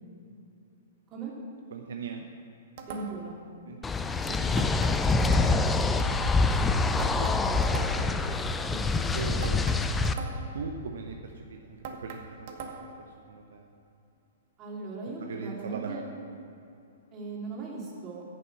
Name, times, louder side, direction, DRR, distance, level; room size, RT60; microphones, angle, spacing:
voice 1, 1.7-2.3 3.6-7.4 7.7-7.8 8.3-8.4 9.1-10.1 10.5-13.7 15.2-16.2, right 5 dB, 65° right, 3 dB, 0.7 m, -41 dB
sound 1, 2.8-3.4 4.6-5.8 7.0-8.2 9.4-10.6 11.8-13.1, right 5 dB, 50° right, 1.2 m, -41 dB
voice 2, 2.9-3.4 7.3-8.0 8.7-8.8 14.6-16.0 17.1-18.2, right 3 dB, 30° right, -3 dB, 2.6 m, -39 dB
sound 2, 3.8-10.1, left 3 dB, 10° left, 0.5 m, -25 dB
10.0 x 6.8 x 7.3 m, 2.7 s
hypercardioid pair, 115°, 0 cm